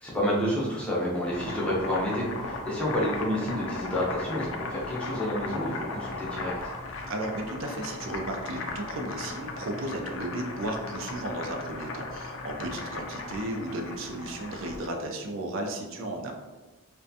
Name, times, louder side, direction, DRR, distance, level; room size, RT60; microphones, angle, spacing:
voice 1, 0.0-6.5, equal, 5° left, -7 dB, 0.5 m, -29 dB
Boiling, 1.1-14.9, left 3 dB, 70° left, 0.4 m, -37 dB
voice 2, 7.1-16.4, right 1 dB, 70° right, 3 dB, 0.4 m, -34 dB
2.5 x 2.2 x 2.5 m, 1.2 s
head